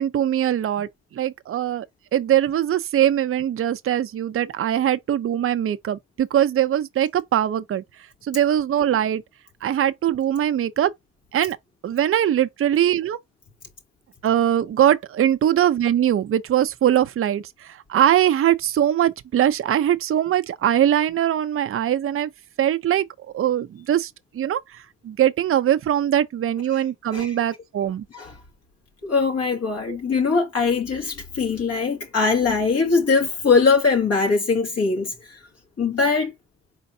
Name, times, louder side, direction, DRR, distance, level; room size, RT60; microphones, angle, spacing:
voice 1, 0.0-1.9 2.1-7.8 8.2-9.2 9.6-10.9 11.3-11.6 11.8-13.2 14.2-22.3 22.6-23.1 23.3-28.0 29.9-30.0, right 11 dB, 45° right, 0.6 m, -21 dB
voice 2, 29.0-35.4 35.8-36.3, left 4 dB, 55° left, 2.1 m, -21 dB
4.5 x 4.1 x 2.7 m
cardioid pair, 90°, 30 cm